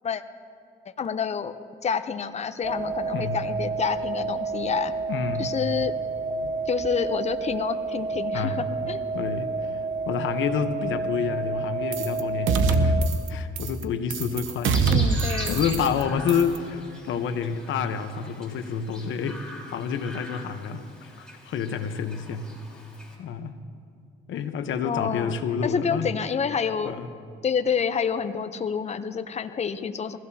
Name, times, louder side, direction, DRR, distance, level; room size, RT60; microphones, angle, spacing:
voice 1, 1.0-4.9 5.4-5.9 6.7-9.0 14.9-15.6 24.8-25.3 25.6-27.0 27.4-30.2, left 6 dB, 35° left, 10 dB, 0.7 m, -28 dB
sound 1, 2.6-13.1, right 4 dB, 20° right, 0.6 m, -30 dB
voice 2, 5.1-5.6 8.3-8.6 9.1-9.8 10.0-13.0 13.3-15.2 15.5-22.5 23.2-23.5 24.3-26.1 26.8-27.1, left 7 dB, 75° left, 9 dB, 1.0 m, -29 dB
sound 2, 11.9-12.2 12.5-13.3 13.6-13.8 14.1-16.0 16.3-16.6, right 4 dB, 80° right, 0.9 m, -23 dB
Chirp tweet, 14.7-23.2, left 1 dB, 5° left, 3.9 m, -42 dB
22.0 x 15.5 x 2.8 m, 2.5 s
cardioid pair, 90°, 20 cm